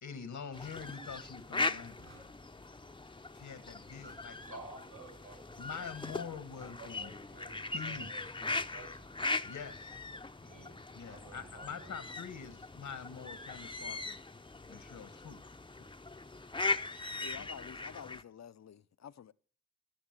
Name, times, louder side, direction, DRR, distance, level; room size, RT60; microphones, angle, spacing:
voice 1, 0.0-2.1 3.3-4.4 5.6-7.1 7.7-8.1 9.4-9.9 10.9-14.2 14.7-15.4 15.8-15.9 17.4-17.5, left 6 dB, 85° left, 1.4 m, -45 dB
sound 1, 0.5-18.2, left 3 dB, 15° left, 0.6 m, -40 dB
sound 2, 1.8-3.4 3.7-10.9, right 3 dB, 60° right, 5.2 m, -67 dB
voice 2, 4.5-5.7 6.0-6.3 6.6-9.0 10.4-10.8 11.1-12.0, right 2 dB, 85° right, 6.1 m, -52 dB
voice 3, 17.2-19.3, left 8 dB, 60° left, 0.6 m, -49 dB
14.5 x 7.2 x 7.4 m
wide cardioid pair, 75°, 30 cm